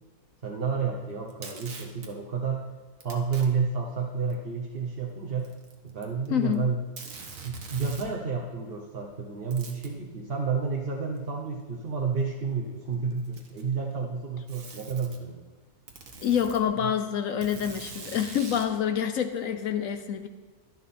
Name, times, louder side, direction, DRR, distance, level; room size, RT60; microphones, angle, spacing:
voice 1, 0.4-2.6 3.0-5.5 5.8-6.8 7.4-15.4 16.8-16.9, right 5 dB, 45° right, -1 dB, 1.1 m, -30 dB
Packing tape duct tape, 1.3-2.1 3.0-3.5 4.3-4.4 5.4-6.3 6.5-6.6 7.0-8.1 9.5-9.9 11.2-11.3 12.2-12.3 13.1-13.7 14.5-15.2 15.9-16.6 17.4-18.7, right 4 dB, 60° right, 1.6 m, -43 dB
voice 2, 6.3-6.6 16.2-20.3, left 9 dB, 65° left, 8 dB, 1.0 m, -27 dB
11.5 x 10.5 x 4.3 m, 1.4 s
omnidirectional pair, 1.6 m